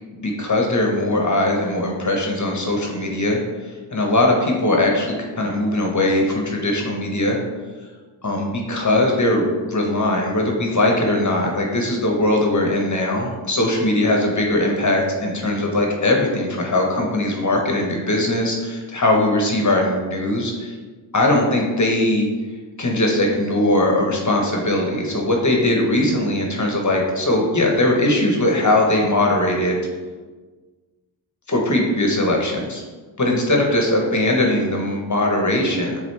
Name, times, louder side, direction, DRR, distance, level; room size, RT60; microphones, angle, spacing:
voice 1, 0.2-7.4 8.2-20.7 21.1-22.3 22.8-29.8 31.5-32.8 33.2-36.0, left 1 dB, 35° left, 1 dB, 1.2 m, -20 dB
7.8 x 3.6 x 3.4 m, 1.4 s
wide cardioid pair, 80°, 48 cm